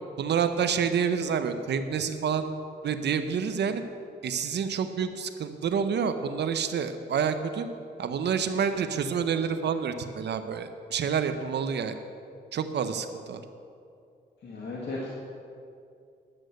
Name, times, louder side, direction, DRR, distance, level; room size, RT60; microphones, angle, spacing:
voice 1, 0.2-2.5 2.8-3.8 4.2-7.7 8.0-11.9 12.5-13.4, right 7 dB, 70° right, 9 dB, 0.8 m, -28 dB
voice 2, 14.4-15.1, left 2 dB, 70° left, -5 dB, 1.9 m, -35 dB
10.5 x 8.0 x 6.5 m, 2.5 s
cardioid pair, 80°, 18 cm